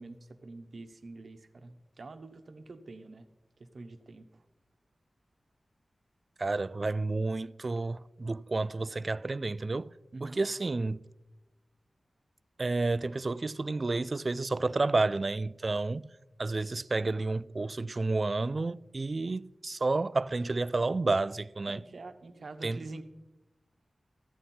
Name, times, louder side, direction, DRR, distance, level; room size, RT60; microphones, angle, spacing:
voice 1, 0.0-3.3 3.7-4.4 10.1-10.4 21.7-23.0, right 3 dB, 65° right, 0.9 m, -46 dB
voice 2, 6.4-9.9 10.2-11.0 12.6-16.1 16.4-21.8 22.6-22.8, right 3 dB, 45° right, 0.3 m, -30 dB
14.5 x 9.0 x 4.3 m
wide cardioid pair, 70°, 0 cm